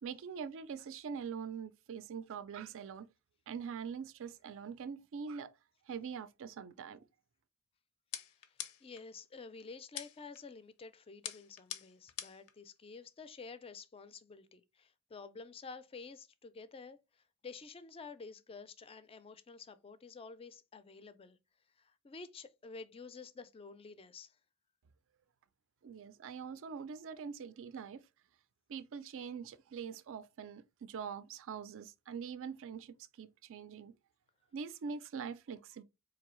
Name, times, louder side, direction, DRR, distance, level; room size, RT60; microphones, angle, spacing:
voice 1, 0.0-3.1 3.5-5.5 5.9-7.0 25.8-28.0 28.7-33.9 34.5-35.8, right 6 dB, 60° right, 0.4 m, -43 dB
sound 1, 8.1-9.0 10.0-10.4 11.2-12.5, left 10 dB, 85° left, 0.5 m, -44 dB
voice 2, 8.5-21.4 21.8-24.4, left 4 dB, 25° left, 0.4 m, -50 dB
4.0 x 2.7 x 3.0 m
head